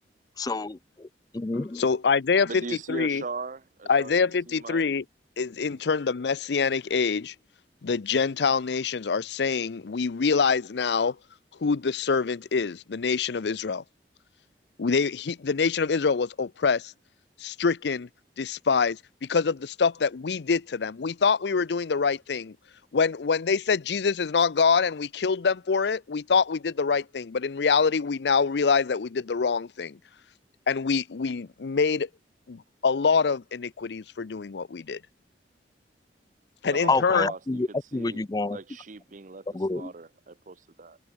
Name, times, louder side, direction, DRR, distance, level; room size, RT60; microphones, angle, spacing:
voice 1, 0.4-1.1 1.3-1.8 36.9-38.6 39.5-39.9, left 3 dB, 20° left, 0.4 m, -28 dB
voice 2, 1.8-3.2 3.9-5.0 5.4-7.3 7.8-11.2 11.6-13.8 14.8-16.9 17.4-18.1 18.4-22.6 22.9-30.0 30.7-32.1 32.5-35.0 36.6-37.3, left 5 dB, 70° left, 0.5 m, -25 dB
voice 3, 2.4-5.0 36.6-41.0, right 3 dB, 45° right, 0.8 m, -40 dB
head